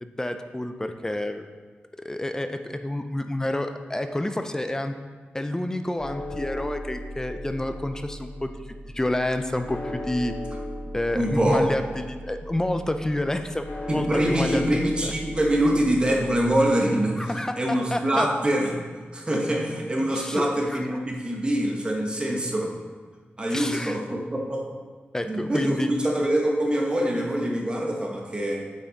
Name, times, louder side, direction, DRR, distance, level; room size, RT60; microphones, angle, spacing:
voice 1, 0.0-1.5 2.0-4.9 5.3-8.5 8.9-10.3 10.9-15.1 17.2-18.3 20.1-20.8 23.5-24.0 25.1-25.9, left 1 dB, 15° left, 8 dB, 0.5 m, -29 dB
sound 1, 6.0-16.5, left 1 dB, 50° left, 1.3 m, -37 dB
voice 2, 11.1-11.7 13.9-17.3 17.6-18.7 19.1-22.7 23.4-24.7 25.2-28.6, right 1 dB, 25° right, 0 dB, 1.2 m, -24 dB
8.6 x 5.8 x 4.1 m, 1.5 s
wide cardioid pair, 110°, 4 cm